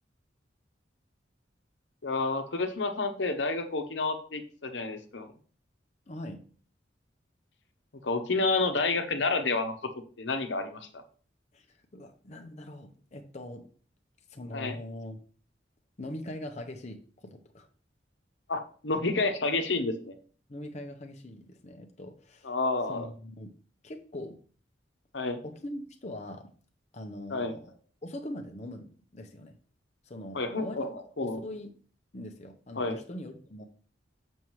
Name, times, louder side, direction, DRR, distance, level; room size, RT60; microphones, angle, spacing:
voice 1, 2.0-5.3 8.0-9.7 10.2-11.0 14.5-14.8 18.5-20.1 22.4-23.1 25.1-25.4 27.3-27.5 30.3-30.9 31.2-31.4 32.8-33.0, left 3 dB, 70° left, 7 dB, 1.0 m, -29 dB
voice 2, 6.1-6.4 11.5-13.6 14.3-15.2 16.0-17.7 20.5-22.5 22.9-23.5 23.8-24.4 25.4-26.5 26.9-27.7 28.0-29.6 30.0-31.8 32.1-33.6, left 1 dB, 40° left, 4 dB, 0.7 m, -42 dB
7.2 x 6.3 x 3.1 m, 0.43 s
head